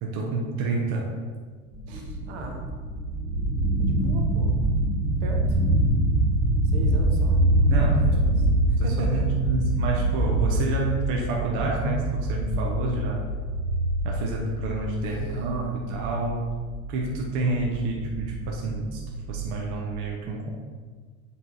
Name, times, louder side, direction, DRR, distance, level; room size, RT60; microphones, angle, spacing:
voice 1, 0.0-1.1 1.9-2.1 7.7-13.3 14.0-16.5 16.9-19.0 19.3-20.5, right 2 dB, 55° right, -1 dB, 1.1 m, -29 dB
sound 1, 1.7-19.6, right 1 dB, ahead, 0.6 m, -25 dB
voice 2, 2.2-2.6 3.8-4.6 5.2-5.6 6.7-7.4 7.9-8.5 8.8-9.2 15.1-16.1, right 4 dB, 75° right, 1 dB, 1.3 m, -37 dB
7.8 x 3.9 x 3.9 m, 1.5 s
supercardioid pair, 135°, 35 cm